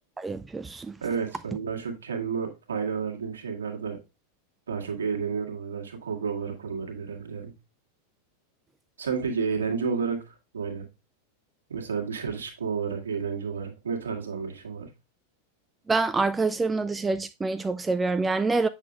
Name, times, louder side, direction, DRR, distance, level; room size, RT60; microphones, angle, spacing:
voice 1, 0.2-0.9 15.9-18.7, right 3 dB, 10° right, 0.3 m, -26 dB
voice 2, 1.0-4.0 4.7-7.5 9.0-10.9 11.7-14.9, right 5 dB, 70° right, 1.7 m, -31 dB
8.2 x 6.5 x 2.4 m
figure-of-eight pair, 90°, 0 cm